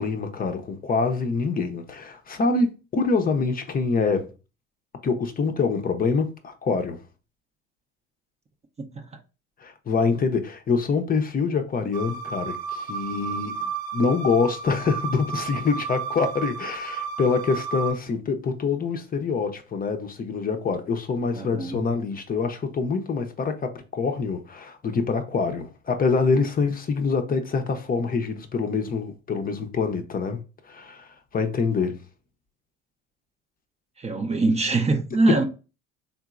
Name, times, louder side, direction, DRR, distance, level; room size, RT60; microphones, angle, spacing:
voice 1, 0.0-4.3 5.0-7.0 9.6-30.4 30.6-32.0, left 4 dB, 30° left, 0.6 m, -25 dB
voice 2, 8.8-9.2 21.3-21.8 34.0-35.4, right 2 dB, 20° right, 0.6 m, -23 dB
sound 1, 11.9-17.9, right 6 dB, 70° right, 0.9 m, -32 dB
3.7 x 2.8 x 2.4 m
hypercardioid pair, 70°, 31 cm